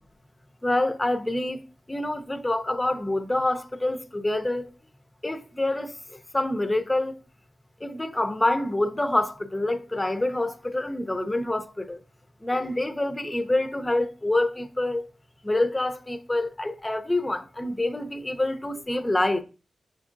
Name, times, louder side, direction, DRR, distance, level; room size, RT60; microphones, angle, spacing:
voice 1, 0.6-1.6 1.9-4.7 5.2-5.9 6.3-7.1 7.8-12.0 12.4-15.1 15.4-19.4, left 1 dB, 20° left, 0.6 m, -26 dB
5.8 x 3.6 x 2.5 m
cardioid pair, 50°, 0 cm